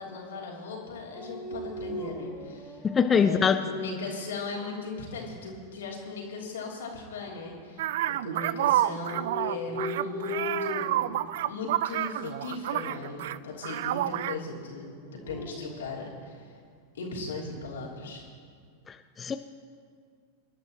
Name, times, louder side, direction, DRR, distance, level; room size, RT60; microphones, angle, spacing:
voice 1, 0.0-2.8 3.1-11.2 11.4-16.5 16.9-18.3, left 3 dB, 65° left, -3 dB, 3.1 m, -38 dB
Dog, 1.1-3.3 3.9-4.7 8.8-11.1 11.9-12.3 14.9-16.2, left 1 dB, 10° right, 3.9 m, -38 dB
voice 2, 2.8-3.6 18.9-19.4, left 6 dB, 20° left, 9 dB, 0.5 m, -23 dB
sound 1, 7.8-13.4 13.6-14.4, right 13 dB, 55° right, 0.3 m, -29 dB
26.0 x 11.5 x 3.0 m, 2.1 s
figure-of-eight pair, 90°, 0 cm